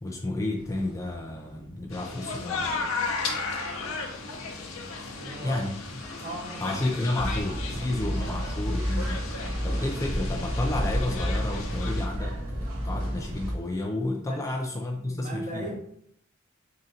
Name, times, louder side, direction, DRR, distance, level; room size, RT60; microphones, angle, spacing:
voice 1, 0.0-2.7 5.4-5.8 6.6-9.2 9.6-15.7, left 2 dB, 15° left, 2 dB, 0.3 m, -31 dB
sound 1, 0.5-13.7, equal, 40° left, 1.2 m, -48 dB
sound 2, 1.9-12.1, left 4 dB, 85° left, 0.7 m, -35 dB
voice 2, 5.1-5.7 6.2-6.6 8.1-8.3 14.2-14.4 15.0-15.8, right 1 dB, 35° right, 0 dB, 1.0 m, -38 dB
sound 3, 7.1-13.5, equal, 85° right, 1.1 m, -30 dB
3.7 x 2.6 x 4.1 m, 0.70 s
head